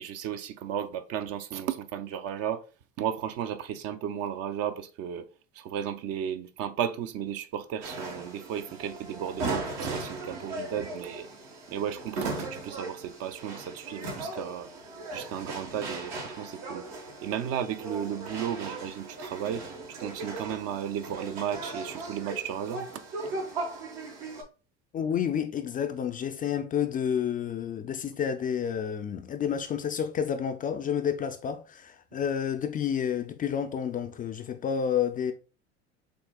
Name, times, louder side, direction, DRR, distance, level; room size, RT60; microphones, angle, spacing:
voice 1, 0.0-2.6 3.0-5.3 5.5-11.3 11.7-14.7 15.1-16.9 17.2-19.7 20.0-23.0, right 9 dB, 45° right, 0.5 m, -34 dB
sound 1, 7.8-24.4, right 2 dB, 70° right, 1.2 m, -38 dB
voice 2, 24.9-35.3, left 8 dB, 25° left, 0.3 m, -30 dB
6.5 x 2.3 x 2.2 m
hypercardioid pair, 80°, 34 cm